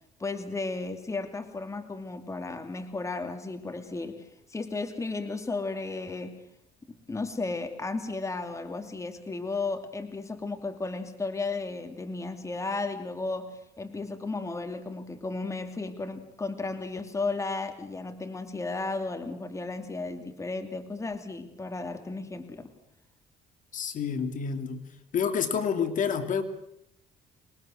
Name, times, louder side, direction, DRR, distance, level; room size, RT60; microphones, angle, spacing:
voice 1, 0.2-6.4 6.9-22.7, left 3 dB, 15° left, 7 dB, 2.8 m, -34 dB
voice 2, 23.7-24.8 25.1-26.4, left 6 dB, 50° left, 7 dB, 2.8 m, -28 dB
26.5 x 21.0 x 6.5 m, 0.76 s
cardioid pair, 110°, 17 cm